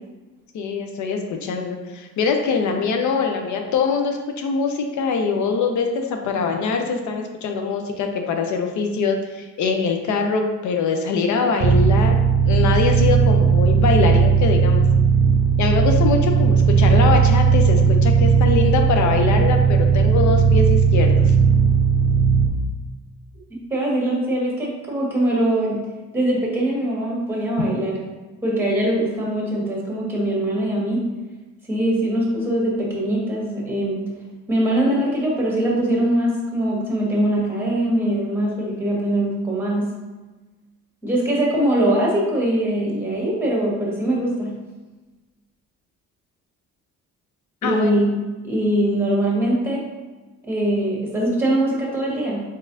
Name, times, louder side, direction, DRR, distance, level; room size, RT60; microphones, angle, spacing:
voice 1, 0.5-12.2 12.5-14.8 15.6-21.3 47.6-47.9, left 5 dB, 70° left, 4 dB, 0.6 m, -23 dB
sound 1, 11.6-22.5, right 6 dB, 45° right, 0.5 m, -16 dB
voice 2, 23.7-25.8 26.1-28.0 28.4-31.1 31.7-34.0 34.5-39.9 41.0-44.5 47.6-48.1 48.4-49.8 50.4-52.4, right 1 dB, 5° right, -4 dB, 1.4 m, -22 dB
4.0 x 3.7 x 2.6 m, 1.2 s
cardioid pair, 90°, 30 cm